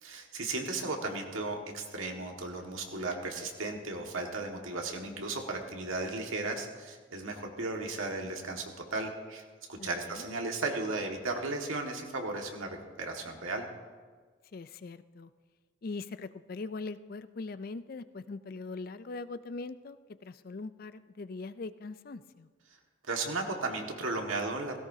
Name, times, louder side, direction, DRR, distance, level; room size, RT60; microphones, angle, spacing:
voice 1, 0.0-9.4 9.7-13.6 23.1-24.8, right 3 dB, 90° right, 2 dB, 1.8 m, -35 dB
voice 2, 9.8-10.3 14.5-15.3 15.8-20.0 20.2-22.5, left 3 dB, 45° left, 13 dB, 0.4 m, -41 dB
17.0 x 16.5 x 2.8 m, 1.5 s
head